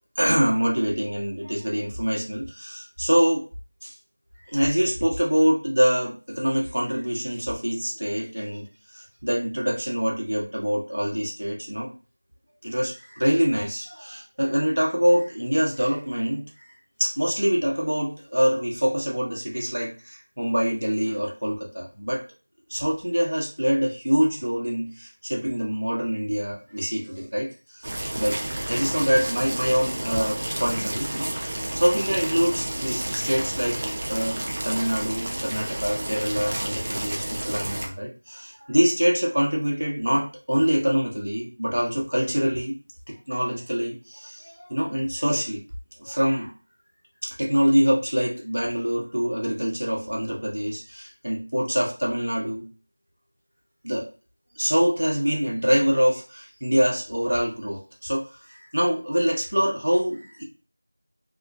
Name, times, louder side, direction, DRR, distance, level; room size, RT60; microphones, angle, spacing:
voice 1, 0.2-3.4 3.8-3.9 4.5-11.9 12.6-16.4 17.0-22.2 22.7-27.9 28.2-28.4 28.7-33.8 34.1-42.8 43.1-45.6 46.0-46.5 47.2-52.7 53.8-54.1 54.5-60.4, equal, 70° right, -2 dB, 0.9 m, -25 dB
sound 1, 27.8-37.9, right 1 dB, 20° right, 0.3 m, -31 dB
2.9 x 2.1 x 2.6 m, 0.35 s
figure-of-eight pair, 175°, 0 cm